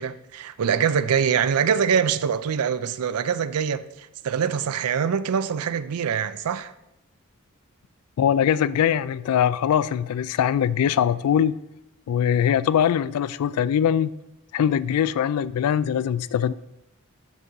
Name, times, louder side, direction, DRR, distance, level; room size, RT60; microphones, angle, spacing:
voice 1, 0.0-6.7, right 7 dB, 85° right, 0.4 m, -24 dB
voice 2, 8.2-11.6 12.1-14.1 14.5-16.5, left 9 dB, 80° left, 0.3 m, -22 dB
6.1 x 5.6 x 5.4 m
head